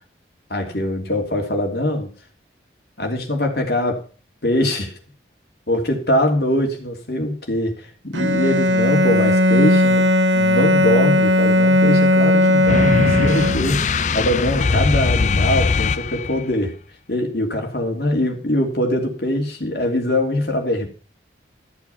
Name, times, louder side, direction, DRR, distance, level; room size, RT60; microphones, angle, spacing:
voice 1, 0.5-2.1 3.0-4.1 4.4-4.9 5.7-13.8 14.1-16.8 17.1-20.9, left 1 dB, 55° left, 2 dB, 3.0 m, -22 dB
Bowed string instrument, 8.1-13.9, left 1 dB, 85° right, 1.2 m, -16 dB
sound 1, 12.7-16.5, left 4 dB, 40° left, 0.5 m, -21 dB
13.5 x 7.0 x 5.7 m, 0.37 s
head